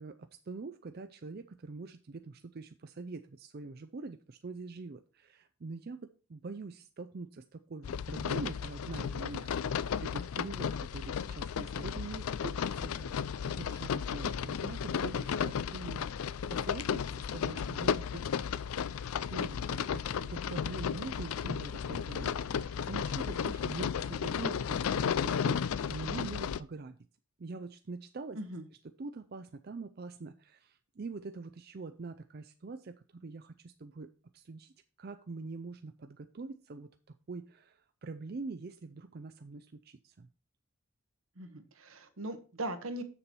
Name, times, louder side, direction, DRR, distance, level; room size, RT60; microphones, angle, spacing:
voice 1, 0.0-13.1 13.5-18.3 19.3-27.0 27.4-28.4 29.0-40.3, right 3 dB, 45° right, 9 dB, 0.4 m, -44 dB
sound 1, 7.8-26.6, left 7 dB, 85° left, 0.4 m, -34 dB
voice 2, 41.4-43.0, right 1 dB, 80° right, 8 dB, 1.2 m, -39 dB
7.1 x 6.8 x 4.4 m, 0.37 s
head